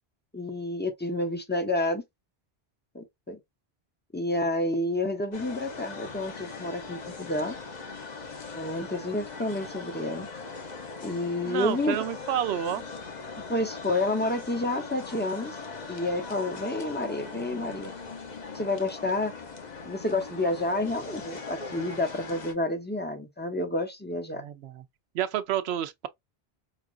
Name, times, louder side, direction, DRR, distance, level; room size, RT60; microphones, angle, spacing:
voice 1, 0.3-2.0 2.9-3.4 4.1-7.6 8.5-10.3 11.0-12.0 13.5-15.6 15.9-17.9 18.5-19.4 19.9-24.4, left 2 dB, 10° left, 0.7 m, -29 dB
sound 1, 5.3-22.5, left 4 dB, 45° left, 0.9 m, -40 dB
voice 2, 11.4-12.8 24.3-24.8 25.1-26.1, right 10 dB, 85° right, 0.8 m, -30 dB
5.0 x 2.4 x 2.4 m
omnidirectional pair, 1.0 m